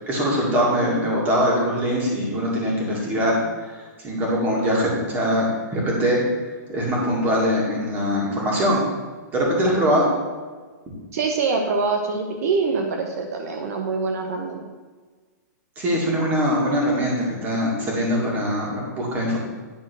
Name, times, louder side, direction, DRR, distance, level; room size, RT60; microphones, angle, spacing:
voice 1, 0.1-3.4 4.0-6.2 6.7-8.8 9.3-10.1 15.8-19.4, equal, 20° right, -3 dB, 2.2 m, -22 dB
voice 2, 11.1-14.6, right 4 dB, 55° right, 3 dB, 0.9 m, -24 dB
10.0 x 4.4 x 6.1 m, 1.4 s
hypercardioid pair, 165°, 10 cm